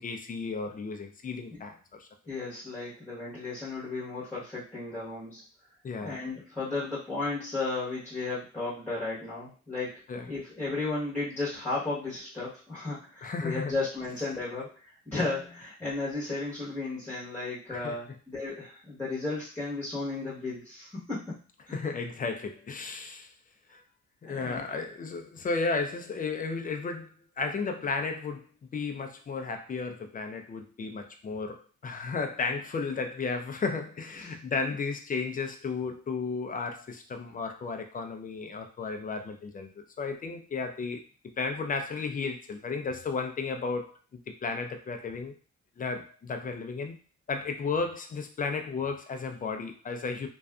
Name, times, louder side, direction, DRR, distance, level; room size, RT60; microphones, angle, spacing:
voice 1, 0.0-2.1 5.8-6.2 10.1-10.3 13.2-13.7 15.1-15.2 17.7-18.0 21.7-23.3 23.7-23.8 24.2-28.4 28.7-41.0 41.4-45.3 45.8-46.9 47.3-50.3, left 4 dB, 30° left, 5 dB, 0.4 m, -34 dB
voice 2, 2.3-5.4 6.0-10.0 10.3-21.4 21.7-21.8 24.2-24.8 34.2-34.3, left 3 dB, 5° left, -8 dB, 1.0 m, -34 dB
2.6 x 2.3 x 2.2 m, 0.38 s
cardioid pair, 90°, 30 cm